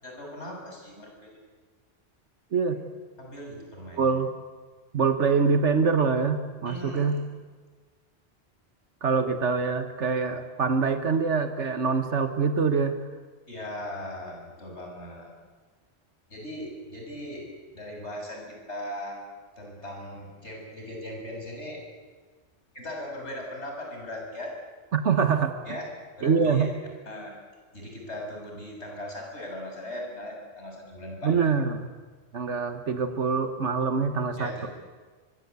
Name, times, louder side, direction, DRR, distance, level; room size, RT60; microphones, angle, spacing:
voice 1, 0.0-1.4 2.7-2.8 3.2-4.2 6.7-7.2 13.5-15.5 16.3-19.2 19.6-21.8 22.7-24.5 25.7-25.9 26.2-26.7 27.1-27.4 27.7-31.3 32.6-32.7 34.4-34.7, left 1 dB, 70° left, 0 dB, 7.1 m, -39 dB
voice 2, 2.5-2.8 3.9-4.3 4.9-7.2 9.0-13.0 24.9-25.5 26.2-26.7 31.2-31.9 32.3-34.7, right 5 dB, 80° right, 7 dB, 1.6 m, -24 dB
24.0 x 23.0 x 8.3 m, 1.4 s
omnidirectional pair, 1.2 m